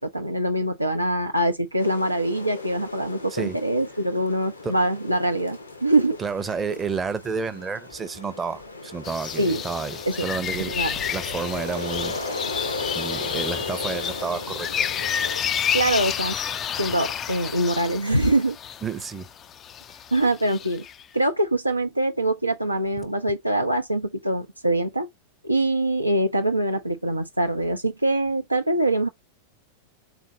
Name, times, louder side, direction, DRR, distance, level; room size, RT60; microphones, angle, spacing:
voice 1, 0.0-6.2 9.4-9.6 10.1-10.3 10.7-10.9 15.7-16.4 16.8-18.6 20.1-20.8 21.1-25.1 25.4-29.1, right 1 dB, 85° right, 0.5 m, -24 dB
sound 1, 1.8-15.4, left 3 dB, 80° left, 0.9 m, -36 dB
voice 2, 6.2-12.2 12.9-15.0 18.8-19.3, right 5 dB, 15° right, 0.6 m, -31 dB
sound 2, 9.0-21.0, left 8 dB, 25° left, 0.3 m, -30 dB
3.7 x 3.3 x 2.6 m
figure-of-eight pair, 90°, 0 cm